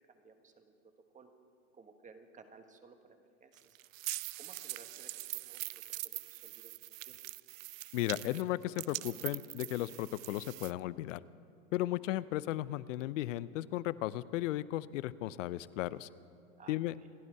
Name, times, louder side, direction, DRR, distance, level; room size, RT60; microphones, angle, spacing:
voice 1, 0.1-0.7 1.1-1.3 1.7-3.6 4.4-5.7 6.0-7.2 16.6-17.1, right 4 dB, 20° right, 6 dB, 1.4 m, -58 dB
sound 1, 3.6-10.7, right 17 dB, 75° right, 0.6 m, -43 dB
voice 2, 7.9-11.2 11.7-16.1 16.7-16.9, left 15 dB, 65° left, 18 dB, 0.6 m, -35 dB
28.0 x 11.0 x 4.6 m, 2.6 s
hypercardioid pair, 115°, 41 cm